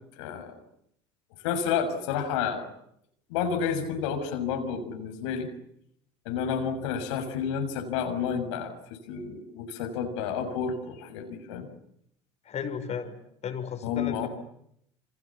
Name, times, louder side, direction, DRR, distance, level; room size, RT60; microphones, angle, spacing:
voice 1, 0.2-0.5 1.4-2.7 3.3-5.5 6.2-11.6 13.8-14.3, left 7 dB, 80° left, 5 dB, 6.6 m, -30 dB
voice 2, 12.4-13.1 13.4-14.3, left 7 dB, 50° left, 7 dB, 5.9 m, -34 dB
29.5 x 27.0 x 7.3 m, 0.73 s
hypercardioid pair, 75°, 15 cm